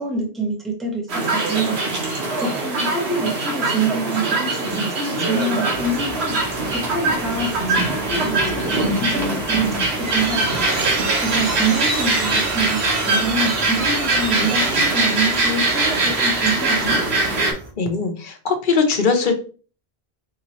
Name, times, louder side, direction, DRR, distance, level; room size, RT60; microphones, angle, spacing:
voice 1, 0.0-1.8 2.4-6.4 6.7-10.5 11.2-17.0, right 2 dB, ahead, 1 dB, 0.9 m, -26 dB
sound 1, 1.1-17.5, right 2 dB, 80° right, 1.4 m, -22 dB
sound 2, 5.7-17.7, left 1 dB, 25° right, 0.9 m, -39 dB
sound 3, 10.0-17.1, right 3 dB, 55° right, 0.8 m, -29 dB
voice 2, 17.8-19.4, left 5 dB, 55° left, 4 dB, 0.9 m, -20 dB
4.6 x 2.8 x 3.0 m, 0.38 s
omnidirectional pair, 1.1 m